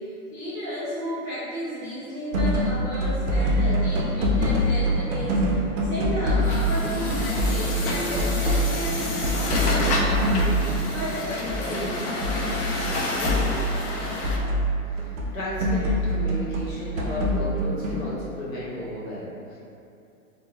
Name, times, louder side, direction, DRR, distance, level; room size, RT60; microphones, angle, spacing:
voice 1, 0.0-10.6 10.9-12.0, equal, 10° right, -23 dB, 0.3 m, -33 dB
sound 1, 2.3-15.3 15.6-18.1, equal, 60° right, 0.5 m, -24 dB
Truck, 6.4-14.4, left 2 dB, 85° left, 0.7 m, -29 dB
voice 2, 14.9-19.6, left 1 dB, 60° left, -7 dB, 1.0 m, -34 dB
3.1 x 2.2 x 2.2 m, 2.6 s
hypercardioid pair, 150°, 45 cm